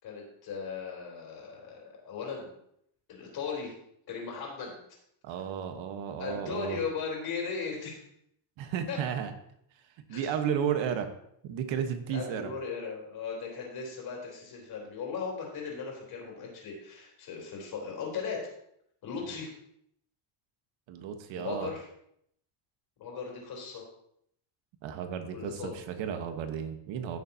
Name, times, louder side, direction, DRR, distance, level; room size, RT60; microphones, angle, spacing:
voice 1, 0.0-2.5 3.1-3.7 4.1-4.8 6.2-8.0 8.9-9.0 10.1-10.3 10.8-10.9 12.1-18.4 19.0-19.5 21.3-21.9 23.0-23.8 25.3-25.8, left 5 dB, 50° left, -1 dB, 3.9 m, -37 dB
voice 2, 5.2-6.8 8.6-9.3 10.1-11.0 11.4-12.5 19.2-19.3 20.9-21.7 24.8-27.2, right 8 dB, 70° right, 7 dB, 1.3 m, -33 dB
15.5 x 7.0 x 2.8 m, 0.72 s
cardioid pair, 145°, 47 cm